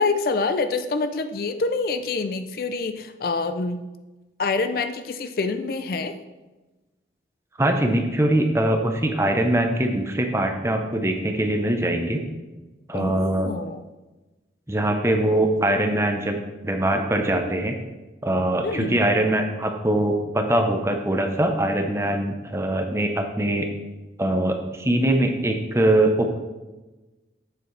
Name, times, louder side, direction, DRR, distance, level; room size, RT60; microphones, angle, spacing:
voice 1, 0.0-3.9 4.4-6.2 12.9-13.9 18.6-19.0, left 3 dB, 55° left, 9 dB, 0.4 m, -26 dB
voice 2, 7.6-12.2 12.9-13.5 14.7-17.7 18.2-23.7 24.2-26.4, right 1 dB, 15° right, 4 dB, 0.7 m, -22 dB
8.0 x 7.2 x 3.2 m, 1.1 s
head